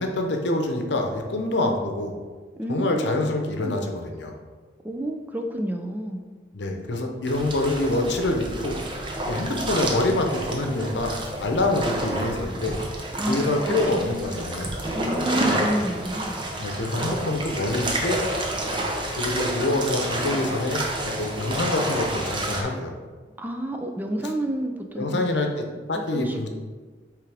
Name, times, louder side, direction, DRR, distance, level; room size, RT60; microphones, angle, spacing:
voice 1, 0.0-2.2 2.7-4.4 6.5-8.8 9.3-11.1 11.4-12.8 13.3-14.7 16.6-18.2 19.2-22.9 25.0-26.5, left 2 dB, 80° left, 3 dB, 0.8 m, -26 dB
voice 2, 2.6-3.8 4.8-6.2 13.2-14.1 14.9-16.4 23.4-25.2 26.1-26.5, right 1 dB, 10° right, 4 dB, 0.4 m, -30 dB
sound 1, 7.3-22.6, right 1 dB, 25° right, 0.8 m, -29 dB
8.3 x 3.4 x 3.4 m, 1.4 s
head